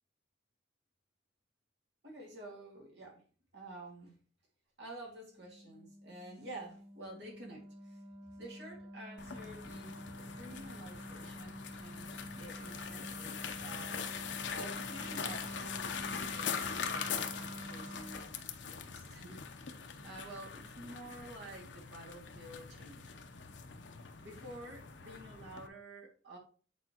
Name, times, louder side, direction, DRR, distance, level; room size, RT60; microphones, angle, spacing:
voice 1, 2.0-3.2 3.5-4.2 4.8-8.0 8.4-14.1 14.5-19.8 20.0-23.1 24.2-26.4, right 1 dB, 75° right, 2.2 m, -50 dB
Wind instrument woodwind instrument, 5.3-18.3, right 1 dB, 35° right, 0.8 m, -48 dB
sound 1, 9.2-25.7, left 6 dB, 80° left, 0.8 m, -42 dB
8.4 x 4.2 x 3.0 m
head